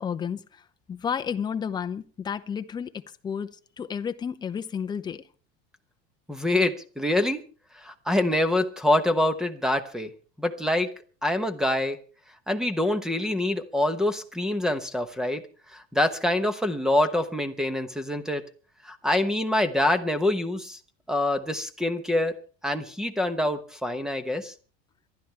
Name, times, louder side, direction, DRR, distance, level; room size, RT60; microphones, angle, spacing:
voice 1, 0.0-5.2, left 7 dB, 15° left, 0.6 m, -32 dB
voice 2, 6.3-7.4 7.8-10.1 10.4-10.9 11.2-12.0 12.5-15.4 15.7-18.4 18.8-20.8 21.1-22.4 22.6-24.5, left 1 dB, ahead, 1.0 m, -25 dB
26.0 x 12.0 x 3.4 m
supercardioid pair, 160°, 30 cm